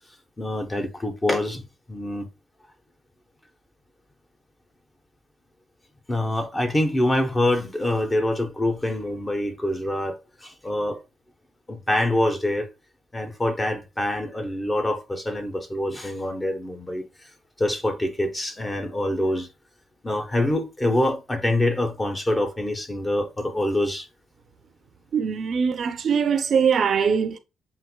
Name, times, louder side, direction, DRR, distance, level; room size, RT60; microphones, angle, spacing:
voice 1, 0.4-1.6 1.9-2.3 6.1-11.0 11.7-12.7 13.1-17.0 17.6-19.5 20.0-24.1, left 1 dB, 15° left, 0.9 m, -25 dB
voice 2, 25.1-27.4, right 6 dB, 55° right, 0.6 m, -22 dB
7.6 x 2.6 x 2.2 m
cardioid pair, 90°, 0 cm